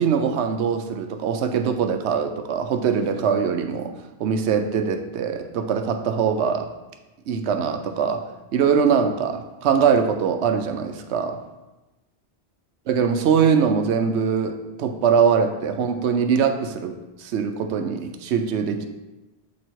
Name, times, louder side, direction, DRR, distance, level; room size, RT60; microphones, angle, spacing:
voice 1, 0.0-3.9 4.2-6.7 7.3-8.2 8.5-11.4 12.9-18.9, right 6 dB, 80° right, 7 dB, 0.9 m, -22 dB
7.4 x 3.1 x 4.4 m, 1.1 s
omnidirectional pair, 1.2 m